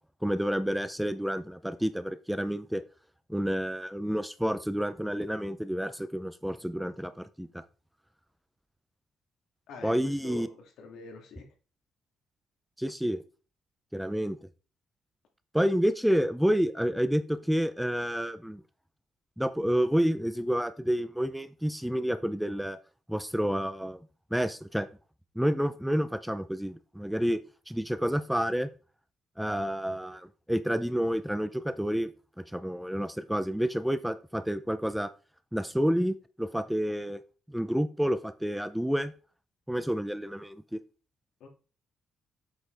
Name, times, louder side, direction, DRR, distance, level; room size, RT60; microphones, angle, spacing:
voice 1, 0.2-2.8 3.3-7.6 9.8-10.5 12.8-13.2 13.9-14.4 15.5-18.6 19.4-22.8 23.1-24.0 24.3-24.9 25.4-27.4 27.7-28.7 29.4-32.1 32.5-35.1 35.5-37.2 37.5-39.1 39.7-40.8, equal, 5° right, 12 dB, 0.6 m, -29 dB
voice 2, 9.7-11.4 41.4-41.5, left 4 dB, 80° left, 2 dB, 2.3 m, -45 dB
8.2 x 5.2 x 3.9 m, 0.37 s
cardioid pair, 90°, 0 cm